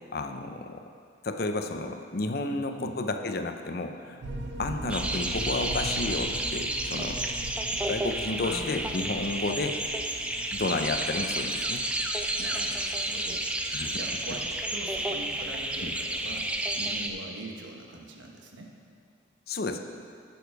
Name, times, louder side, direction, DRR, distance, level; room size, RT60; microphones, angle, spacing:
voice 1, 0.1-0.9 1.2-4.2 4.6-7.2 7.9-9.8 10.5-11.8 13.7-14.0 15.8-15.9 19.5-19.8, left 2 dB, 50° left, 6 dB, 0.6 m, -31 dB
voice 2, 2.5-3.0 8.4-9.0 12.4-13.5 13.9-16.5 16.7-18.7, right 2 dB, 80° right, 1 dB, 1.1 m, -42 dB
sound 1, 4.2-16.8, right 1 dB, 65° right, 0.7 m, -42 dB
sound 2, 4.9-17.1, right 1 dB, 5° right, 0.4 m, -31 dB
11.0 x 7.0 x 4.7 m, 2.3 s
head